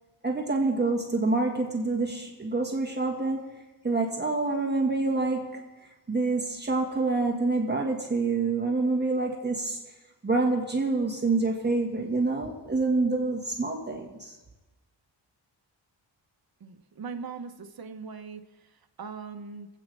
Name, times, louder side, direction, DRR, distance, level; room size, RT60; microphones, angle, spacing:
voice 1, 0.2-3.5 3.8-5.6 6.1-9.8 10.2-14.4, right 3 dB, 20° right, 0 dB, 1.7 m, -27 dB
voice 2, 16.6-19.7, right 5 dB, 50° right, 6 dB, 1.1 m, -40 dB
24.0 x 8.5 x 3.5 m, 1.1 s
cardioid pair, 85°, 47 cm